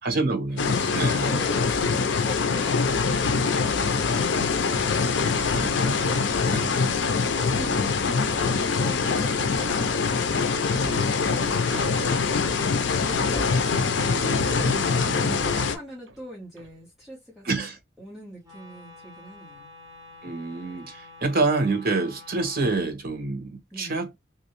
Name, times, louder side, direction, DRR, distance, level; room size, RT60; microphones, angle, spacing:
voice 1, 0.0-1.3 5.5-5.8 6.5-6.8 7.6-7.8 11.7-11.9 14.0-15.4 17.4-17.8 20.2-24.1, right 3 dB, 50° right, 1.1 m, -28 dB
sound 1, 0.6-15.8, left 5 dB, 70° left, 0.5 m, -24 dB
voice 2, 0.6-1.6 2.0-5.5 7.0-13.5 14.8-17.7 18.0-19.7 23.7-24.0, equal, 5° right, 1.5 m, -43 dB
sound 2, 5.8-6.4 6.9-10.1 10.6-14.0 14.3-16.2 16.6-16.8, right 2 dB, 75° right, 0.7 m, -43 dB
Wind instrument woodwind instrument, 18.4-22.8, left 2 dB, 20° right, 1.4 m, -48 dB
3.1 x 2.6 x 2.9 m
head